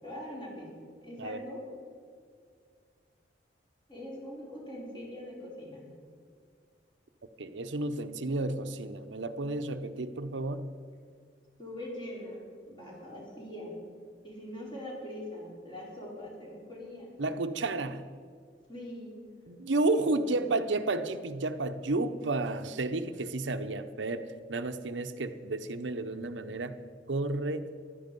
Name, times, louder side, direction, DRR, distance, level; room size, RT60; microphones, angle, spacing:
voice 1, 0.0-0.7 1.0-1.6 3.9-5.9 11.6-13.7 14.2-17.1 18.7-19.1 19.8-20.1 20.4-20.5, left 1 dB, 25° left, -4 dB, 4.6 m, -42 dB
voice 2, 7.4-10.7 17.2-18.0 19.5-26.7 27.1-27.7, right 2 dB, 90° right, 9 dB, 0.8 m, -32 dB
15.0 x 12.0 x 5.3 m, 2.1 s
head